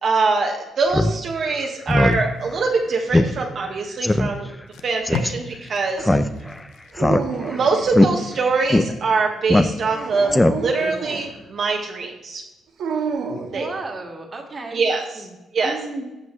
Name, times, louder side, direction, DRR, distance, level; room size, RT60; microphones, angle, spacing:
voice 1, 0.0-4.5 4.8-6.0 7.5-12.4 13.5-13.7 14.7-15.0 15.5-15.7, right 4 dB, 55° right, 0 dB, 1.2 m, -23 dB
Speech synthesizer, 0.9-1.1 1.5-1.6 1.9-2.2 2.5-2.6 3.1-3.3 3.6-3.7 4.0-4.3 5.0-5.3 6.0-6.6 7.0-7.6 7.9-8.1 8.7-8.8 9.5-10.0 10.3-10.8, left 1 dB, 15° left, 0.5 m, -18 dB
Packing tape duct tape, 1.7-3.4 4.1-4.2 4.5-7.5 7.9-8.2, left 5 dB, 90° left, 0.7 m, -37 dB
Dog, 6.9-7.9 9.8-11.3 12.8-13.6, right 5 dB, 80° right, 1.5 m, -28 dB
voice 2, 13.4-14.8 15.1-15.4 15.6-16.0, right 3 dB, 35° right, 3 dB, 1.8 m, -34 dB
15.5 x 5.5 x 3.1 m, 1.0 s
cardioid pair, 90°, 0 cm